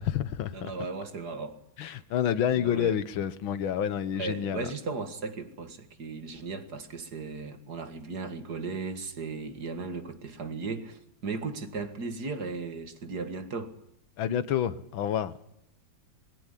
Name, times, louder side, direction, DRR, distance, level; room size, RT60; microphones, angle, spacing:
voice 1, 0.0-0.7 1.8-4.7 14.2-15.3, left 9 dB, 80° left, 1.8 m, -29 dB
voice 2, 0.5-1.6 2.5-3.0 4.1-13.7, right 4 dB, 55° right, 2.4 m, -36 dB
21.0 x 17.0 x 9.9 m
omnidirectional pair, 2.2 m